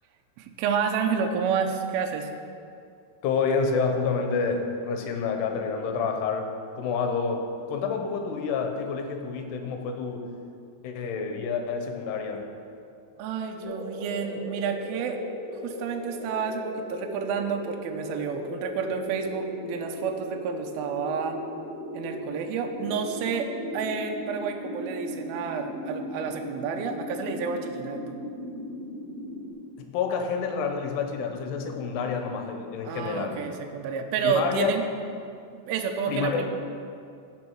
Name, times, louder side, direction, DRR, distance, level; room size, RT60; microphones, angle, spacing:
voice 1, 0.4-2.3 13.2-15.2 15.5-21.4 21.9-23.5 23.7-28.2 32.9-34.8 35.5-36.5, right 6 dB, 80° right, 4 dB, 2.3 m, -30 dB
voice 2, 3.2-6.5 6.8-10.3 10.8-12.4 29.8-33.4 34.2-34.7 36.1-36.5, left 5 dB, 80° left, 4 dB, 2.7 m, -28 dB
sound 1, 13.6-29.5, left 1 dB, 30° left, 3.1 m, -37 dB
16.5 x 6.3 x 4.6 m, 2.4 s
omnidirectional pair, 5.0 m